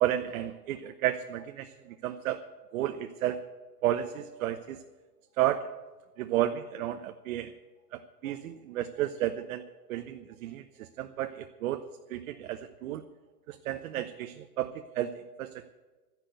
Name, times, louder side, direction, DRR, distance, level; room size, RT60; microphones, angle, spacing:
voice 1, 0.0-2.4 2.7-3.4 3.8-4.8 5.4-5.7 6.2-7.5 7.9-9.6 9.9-11.8 12.1-13.1 13.5-15.1 15.4-15.7, right 12 dB, 55° right, 8 dB, 0.9 m, -32 dB
12.0 x 10.5 x 8.0 m, 1.3 s
hypercardioid pair, 145°, 49 cm